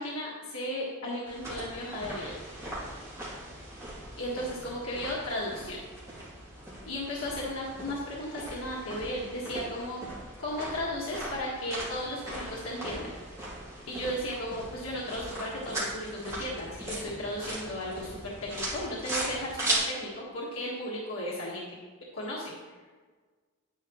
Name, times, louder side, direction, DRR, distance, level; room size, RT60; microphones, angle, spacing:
voice 1, 0.0-2.3 4.2-5.8 6.9-10.0 10.4-13.1 13.9-21.6 22.1-22.9, left 1 dB, 75° left, -5 dB, 1.5 m, -35 dB
sound 1, 1.3-19.8, right 1 dB, 15° right, 2.8 m, -39 dB
10.0 x 9.4 x 3.0 m, 1.4 s
head